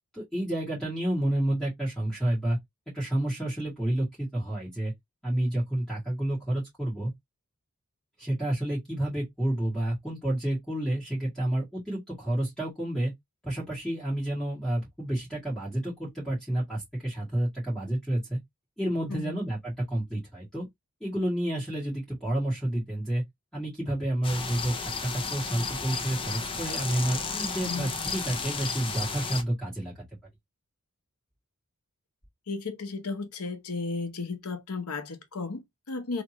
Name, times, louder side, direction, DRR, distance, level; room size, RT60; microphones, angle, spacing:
voice 1, 0.1-2.6 2.9-4.9 5.2-7.1 8.2-13.1 13.4-18.4 18.8-20.7 21.0-23.2 23.5-29.9, right 1 dB, 5° left, 1.9 m, -30 dB
voice 2, 19.1-19.4 27.6-27.9 32.5-36.2, left 4 dB, 80° left, 0.8 m, -34 dB
sound 1, 24.2-29.4, left 4 dB, 25° left, 0.5 m, -33 dB
3.4 x 2.9 x 2.9 m
head